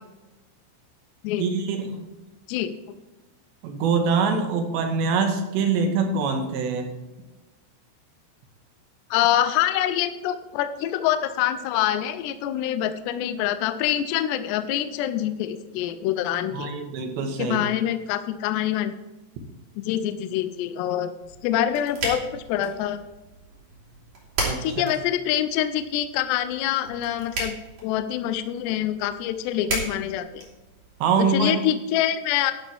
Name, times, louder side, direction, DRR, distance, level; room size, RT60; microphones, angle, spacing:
voice 1, 1.4-2.1 3.6-6.9 16.5-17.7 24.4-24.8 31.0-31.6, right 5 dB, 70° right, 4 dB, 3.3 m, -24 dB
voice 2, 9.1-16.7 17.4-18.9 19.8-21.1 21.4-23.0 24.6-27.6 27.8-30.4 31.3-32.5, left 11 dB, 80° left, 10 dB, 2.5 m, -25 dB
sound 1, 21.2-31.2, right 2 dB, 45° right, 4.6 m, -36 dB
12.0 x 11.5 x 3.5 m, 1.1 s
omnidirectional pair, 5.6 m